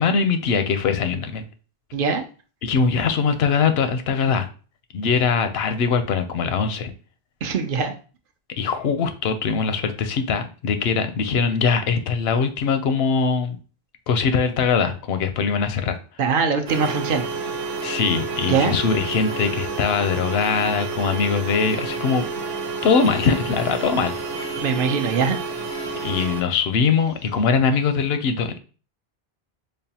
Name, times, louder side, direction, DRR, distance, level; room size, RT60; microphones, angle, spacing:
voice 1, 0.0-1.4 2.6-4.5 4.9-6.9 8.6-13.6 14.1-16.0 17.8-22.2 22.8-24.1 26.0-28.6, left 5 dB, 85° left, 9 dB, 0.8 m, -22 dB
voice 2, 1.9-2.2 7.4-7.9 16.2-17.2 18.5-18.7 24.5-25.4 25.7-26.0, right 5 dB, 65° right, 6 dB, 0.7 m, -22 dB
sound 1, 16.7-26.4, right 4 dB, 85° right, 1.1 m, -29 dB
5.2 x 2.2 x 2.8 m, 0.37 s
omnidirectional pair, 1.0 m